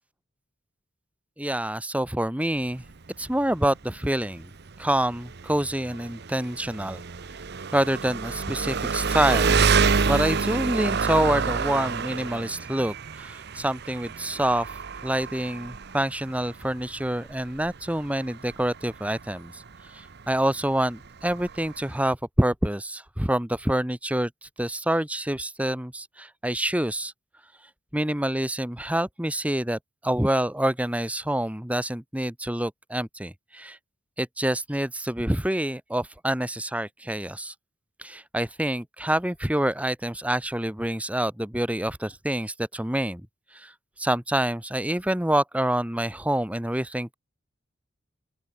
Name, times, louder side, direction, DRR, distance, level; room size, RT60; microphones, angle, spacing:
voice 1, 1.4-2.8 3.2-4.5 4.8-7.0 7.7-9.6 10.0-14.7 15.0-19.6 19.9-24.3 24.6-27.1 27.9-33.8 34.2-37.5 38.0-43.2 43.5-43.7 44.0-47.2, right 1 dB, 5° right, 1.5 m, -27 dB
Engine, 2.6-22.1, right 5 dB, 55° right, 0.9 m, -29 dB
open air
head